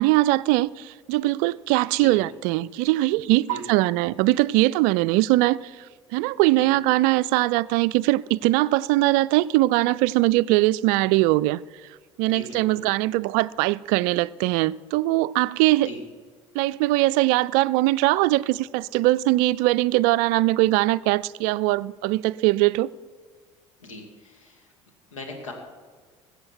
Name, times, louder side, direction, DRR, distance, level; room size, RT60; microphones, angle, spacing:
voice 1, 0.0-5.6 6.1-11.6 12.2-15.9 16.6-22.9, right 18 dB, 55° right, 0.4 m, -21 dB
voice 2, 12.3-12.8 15.8-16.0 23.8-24.7 25.1-25.5, left 2 dB, 80° left, 2.3 m, -39 dB
21.5 x 8.1 x 4.5 m
figure-of-eight pair, 65°, 16 cm